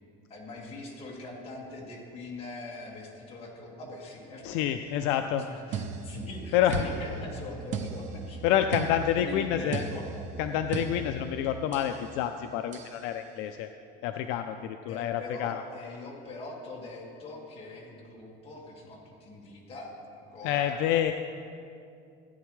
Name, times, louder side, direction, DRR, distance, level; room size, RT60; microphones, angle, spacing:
voice 1, 0.3-4.9 5.5-8.4 9.2-10.1 14.9-20.0 20.3-20.7, left 2 dB, 30° left, -3 dB, 1.9 m, -42 dB
voice 2, 4.4-5.4 6.5-6.8 8.4-9.8 10.4-13.7 14.0-15.6 20.4-21.1, left 10 dB, 70° left, 7 dB, 0.4 m, -28 dB
sound 1, 5.7-12.0 12.7-13.0, right 5 dB, 40° right, 0.5 m, -37 dB
15.5 x 9.5 x 3.2 m, 2.5 s
cardioid pair, 175°, 21 cm